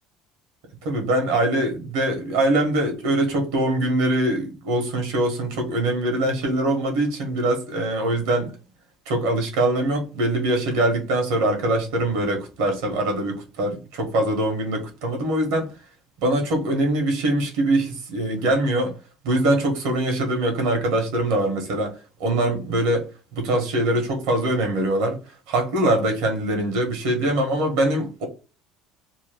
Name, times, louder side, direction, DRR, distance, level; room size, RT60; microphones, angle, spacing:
voice 1, 0.8-8.5 9.1-15.7 16.2-19.0 19.2-21.9 22.2-25.2 25.5-28.3, right 1 dB, 80° right, 1.4 m, -23 dB
3.0 x 2.2 x 3.5 m
supercardioid pair, 95°, 0 cm